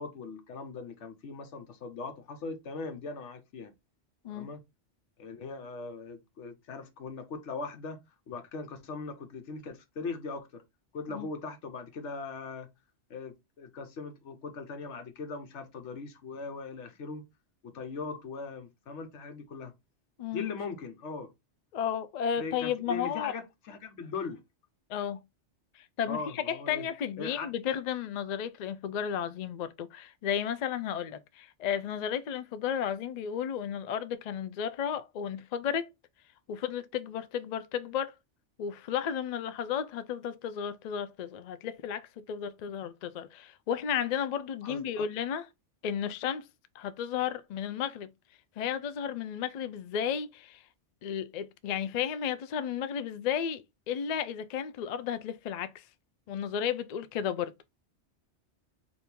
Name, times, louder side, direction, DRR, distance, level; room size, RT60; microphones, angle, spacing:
voice 1, 0.0-3.7 4.3-4.6 5.2-8.0 8.3-10.6 10.9-12.7 13.1-17.2 17.6-19.7 20.3-21.3 22.3-24.4 26.1-26.9 27.2-27.5 44.6-45.1, left 4 dB, 85° left, 1.2 m, -40 dB
voice 2, 21.7-23.3 24.9-25.2 25.7-35.9 36.5-38.1 38.6-45.5 45.8-46.5 46.7-48.1 48.6-50.6 51.0-55.8 56.3-57.5, left 8 dB, 65° left, 0.4 m, -33 dB
4.3 x 2.7 x 3.4 m
omnidirectional pair, 1.2 m